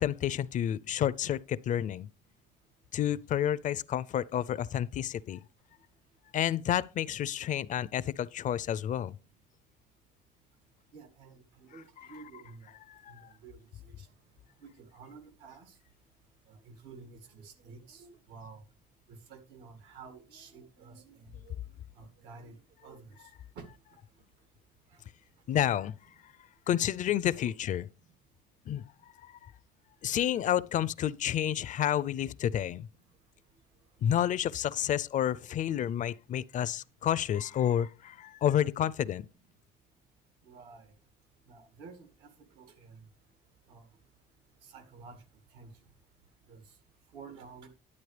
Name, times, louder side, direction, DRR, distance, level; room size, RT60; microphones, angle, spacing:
voice 1, 0.0-2.1 2.9-5.4 6.3-9.1 12.9-13.1 25.5-25.9 26.7-27.9 28.7-28.8 30.0-32.9 34.0-39.3, left 10 dB, 50° left, 0.4 m, -30 dB
voice 2, 10.9-12.7 13.1-13.6 13.8-14.1 14.8-15.7 16.5-18.6 19.3-21.5 22.0-23.0 23.6-23.7 40.4-40.9 41.5-42.3 42.6-43.0 43.7-43.8 44.6-45.2 45.5-45.7 46.5-46.6 47.1-47.7, right 5 dB, 90° right, 2.1 m, -51 dB
11.0 x 8.3 x 3.3 m
cardioid pair, 110°, 17 cm